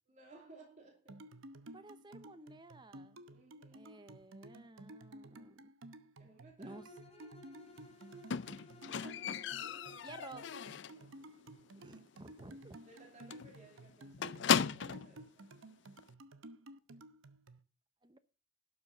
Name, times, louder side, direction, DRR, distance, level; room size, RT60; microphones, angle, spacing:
voice 1, 0.1-1.2 2.5-2.6 3.3-4.0 6.2-6.9 8.9-10.6 10.9-11.2 12.9-15.5, right 2 dB, 40° right, 2.7 m, -60 dB
sound 1, 1.1-17.6, right 1 dB, 85° right, 0.9 m, -54 dB
voice 2, 1.7-3.2 3.7-5.7 6.6-7.3 10.0-10.4 11.8-12.8 18.0-18.2, right 2 dB, 25° right, 0.8 m, -54 dB
Bowed string instrument, 6.7-10.2, left 1 dB, 30° left, 2.3 m, -57 dB
Squeak, 8.3-11.1 11.4-11.8 12.1-12.2 12.6-12.7 12.9-13.1 13.3-15.1 16.0-16.1, left 7 dB, 60° left, 0.5 m, -36 dB
12.0 x 6.6 x 6.7 m
head